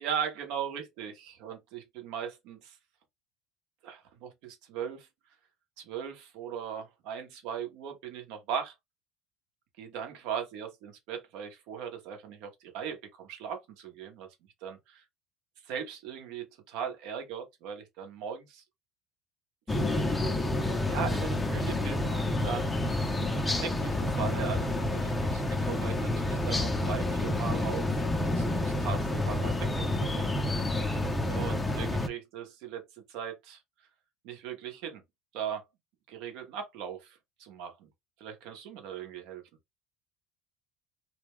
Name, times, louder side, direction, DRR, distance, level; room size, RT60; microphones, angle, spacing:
voice 1, 0.0-2.8 3.8-5.1 5.8-8.7 9.8-14.3 14.6-15.0 15.6-18.6 19.7-20.1 20.9-22.8 23.4-30.3 31.3-33.6 34.2-35.0 35.3-35.6 36.1-37.9 38.2-39.4, right 8 dB, 65° right, 0.8 m, -39 dB
sound 1, 19.7-32.1, left 2 dB, 10° left, 0.5 m, -29 dB
2.2 x 2.2 x 3.5 m
hypercardioid pair, 75°, 0 cm